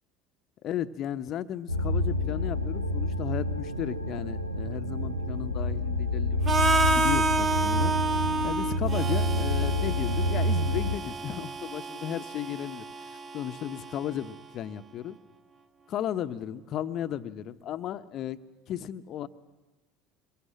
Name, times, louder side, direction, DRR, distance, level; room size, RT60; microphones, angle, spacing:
voice 1, 0.6-7.9 8.4-15.2 15.9-18.4 18.7-19.3, left 10 dB, 45° left, 11 dB, 1.1 m, -35 dB
sound 1, 1.7-11.0, left 1 dB, 90° right, 1.2 m, -28 dB
Harmonica, 6.5-14.4, right 3 dB, 30° right, 1.1 m, -30 dB
25.0 x 23.0 x 7.5 m, 1.1 s
figure-of-eight pair, 70°, 0 cm